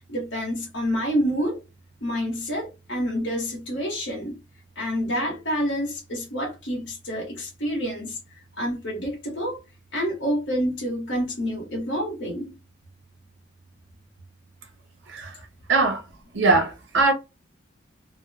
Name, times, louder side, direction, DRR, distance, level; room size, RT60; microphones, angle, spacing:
voice 1, 0.1-1.6 2.0-4.4 4.7-8.2 8.6-9.6 9.9-12.6, equal, 75° left, 1.3 m, -28 dB
voice 2, 15.7-16.0 16.3-17.1, right 3 dB, 75° right, 0.7 m, -20 dB
2.9 x 2.1 x 2.7 m
head